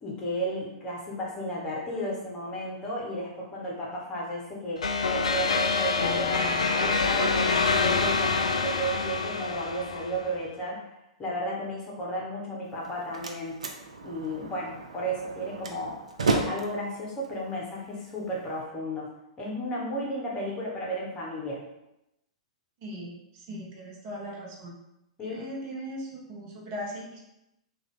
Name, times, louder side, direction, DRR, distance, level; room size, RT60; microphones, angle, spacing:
voice 1, 0.0-10.8 11.2-13.6 14.0-16.0 16.3-19.1 19.4-21.6 25.2-25.4, equal, 25° left, -3 dB, 1.0 m, -33 dB
sound 1, 4.8-10.3, left 4 dB, 75° left, 0.3 m, -26 dB
Slam, 12.7-18.6, right 3 dB, 75° right, 0.5 m, -34 dB
voice 2, 22.8-24.8 25.2-27.2, equal, 40° right, -2 dB, 0.9 m, -39 dB
3.4 x 2.4 x 3.6 m, 0.88 s
figure-of-eight pair, 105°, 4 cm